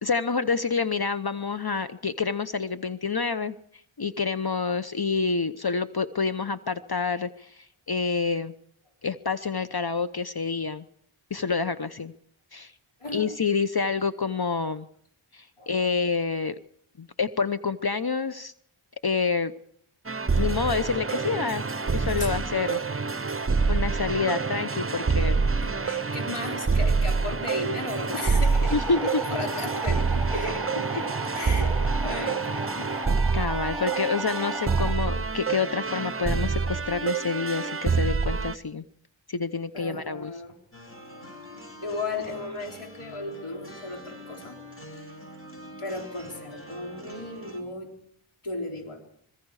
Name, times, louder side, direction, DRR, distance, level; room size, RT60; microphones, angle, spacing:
voice 1, 0.0-3.5 4.0-8.5 9.0-10.8 11.3-12.1 12.5-12.7 13.1-14.9 15.3-16.5 17.0-18.5 19.0-19.5 20.4-21.6 21.9-22.8 23.7-25.4 28.7-29.0 33.3-38.8 39.3-40.3, left 5 dB, 50° left, 11 dB, 0.9 m, -28 dB
voice 2, 13.0-13.4 15.6-15.7 22.2-22.3 25.6-32.9 39.7-40.5 41.8-44.6 44.9-45.0 45.8-47.9 48.4-49.0, left 2 dB, 80° left, 1 dB, 3.8 m, -35 dB
sound 1, 20.1-38.6, right 4 dB, 25° right, 0.8 m, -27 dB
sound 2, 28.1-34.9, right 2 dB, 5° right, 5.8 m, -36 dB
sound 3, 40.7-47.6, left 1 dB, 25° left, 7.2 m, -44 dB
26.0 x 22.0 x 4.9 m, 0.67 s
wide cardioid pair, 45°, 50 cm